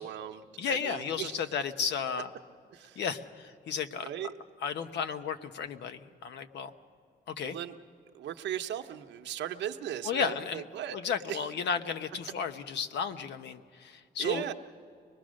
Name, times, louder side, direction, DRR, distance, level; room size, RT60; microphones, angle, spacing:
voice 1, 0.0-0.4 0.7-1.5 2.7-3.0 4.0-4.3 7.4-7.8 8.1-11.0 11.3-11.4 14.2-14.5, right 10 dB, 85° right, 7 dB, 1.0 m, -37 dB
voice 2, 0.6-2.3 3.0-4.1 4.6-6.7 7.3-7.6 10.0-10.6 10.9-14.4, left 6 dB, 75° left, 9 dB, 1.0 m, -33 dB
24.0 x 21.0 x 6.4 m, 2.3 s
cardioid pair, 150°, 18 cm